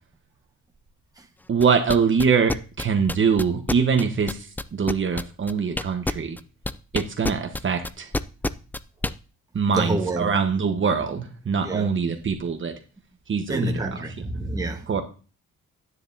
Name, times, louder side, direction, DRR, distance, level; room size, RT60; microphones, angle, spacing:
voice 1, 1.5-4.4 4.7-6.4 6.9-8.1 9.5-12.7 13.3-13.7 14.9-15.0, right 6 dB, 40° right, 1.2 m, -23 dB
sound 1, 1.6-9.1, left 2 dB, 5° left, 0.3 m, -27 dB
voice 2, 9.7-10.4 11.6-11.9 13.5-15.0, right 2 dB, 10° right, 1.4 m, -28 dB
9.9 x 9.6 x 2.8 m
cardioid pair, 90°, 30 cm